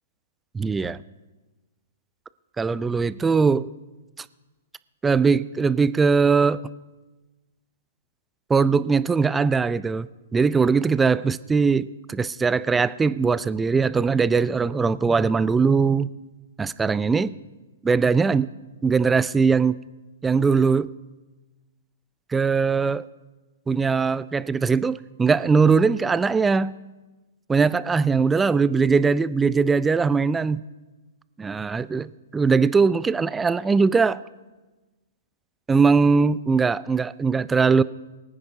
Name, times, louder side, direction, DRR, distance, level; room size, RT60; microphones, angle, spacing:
voice 1, 0.5-1.0 2.6-3.7 5.0-6.6 8.5-10.1 10.3-16.1 16.6-17.3 17.8-18.5 18.8-19.8 20.2-20.9 22.3-23.1 23.7-26.7 27.5-30.6 31.4-34.2 35.7-37.8, right 5 dB, 10° right, 0.3 m, -20 dB
23.0 x 9.8 x 2.7 m
figure-of-eight pair, 120°, 0 cm